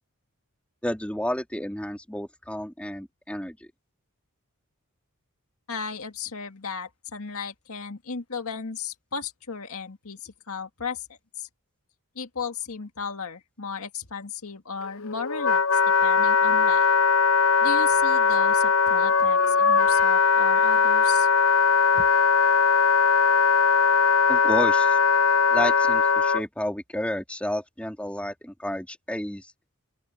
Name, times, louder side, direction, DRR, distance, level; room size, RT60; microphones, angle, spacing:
voice 1, 0.8-3.7 21.9-22.1 24.3-25.0 25.5-29.5, left 1 dB, 5° left, 3.0 m, -31 dB
voice 2, 5.7-11.5 12.2-16.9 17.6-21.3, left 5 dB, 80° left, 1.9 m, -35 dB
Wind instrument woodwind instrument, 14.8-26.4, left 5 dB, 65° left, 0.5 m, -20 dB
open air
head